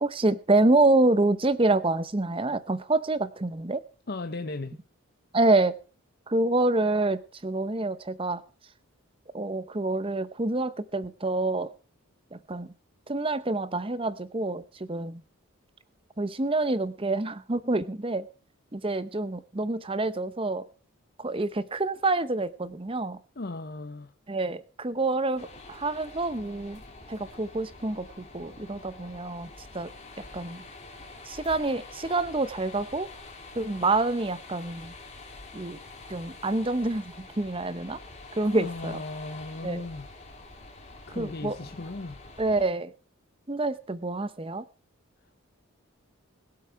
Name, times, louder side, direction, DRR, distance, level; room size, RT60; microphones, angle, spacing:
voice 1, 0.0-3.8 5.3-5.8 6.3-8.4 9.3-11.7 12.3-12.7 13.1-15.2 16.2-18.3 18.7-20.6 21.2-23.2 24.3-26.8 27.1-29.5 29.7-29.9 30.3-30.6 31.3-33.1 33.6-34.9 35.5-35.8 36.1-38.0 38.4-39.0 39.6-39.9 41.1-41.6 42.4-42.9 43.5-44.7, right 2 dB, 25° right, 0.7 m, -27 dB
voice 2, 4.1-4.8 23.4-24.1 38.5-40.1 41.1-42.2, left 2 dB, 45° left, 0.8 m, -36 dB
sound 1, 25.4-42.6, left 3 dB, 30° left, 2.6 m, -46 dB
21.0 x 7.9 x 4.6 m
head